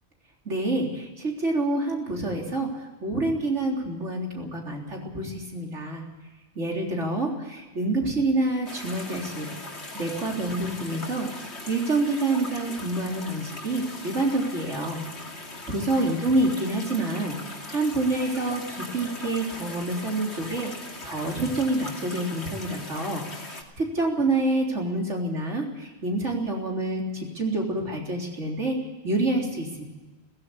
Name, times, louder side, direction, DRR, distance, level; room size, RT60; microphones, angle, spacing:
voice 1, 0.5-2.7 3.0-6.0 6.6-9.5 9.9-11.3 11.7-15.0 15.7-17.4 17.7-20.7 21.0-28.8 29.0-29.8, right 2 dB, 90° right, 0 dB, 4.1 m, -27 dB
sound 1, 8.7-23.6, left 2 dB, 65° left, 3.0 m, -40 dB
17.5 x 15.5 x 9.7 m, 1.2 s
omnidirectional pair, 1.2 m